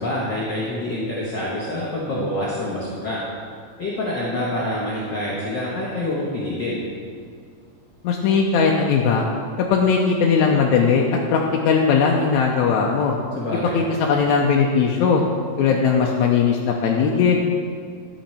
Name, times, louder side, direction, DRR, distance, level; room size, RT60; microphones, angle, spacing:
voice 1, 0.0-3.2 3.8-6.8 13.3-13.7, left 1 dB, 50° left, -5 dB, 1.5 m, -26 dB
voice 2, 8.0-9.2 9.7-13.2 13.7-15.2 15.6-17.4, left 5 dB, 80° left, -1 dB, 2.0 m, -19 dB
13.0 x 6.3 x 4.3 m, 2.1 s
omnidirectional pair, 3.4 m